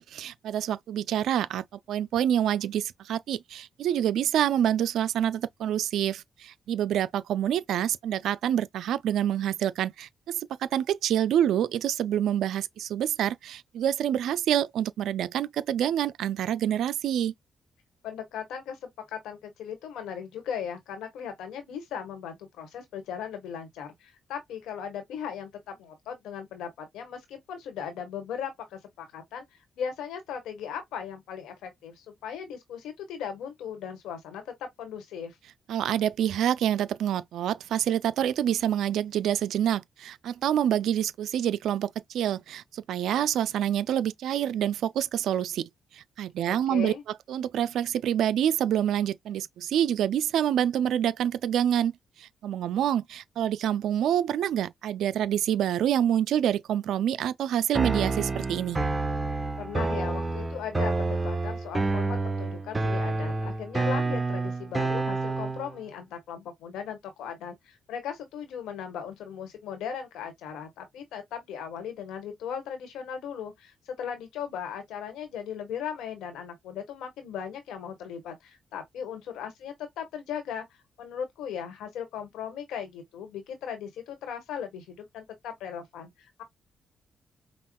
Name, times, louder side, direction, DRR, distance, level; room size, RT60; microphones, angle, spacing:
voice 1, 0.0-17.3 35.7-45.7 45.9-46.9 47.3-51.9 52.2-58.8, right 10 dB, 80° right, 0.3 m, -27 dB
voice 2, 18.0-29.4 29.8-35.4 46.4-47.0 59.6-80.7 81.0-86.4, left 8 dB, 85° left, 1.3 m, -38 dB
sound 1, 57.7-65.7, right 3 dB, 25° right, 1.0 m, -28 dB
5.4 x 2.3 x 2.2 m
supercardioid pair, 55°, 0 cm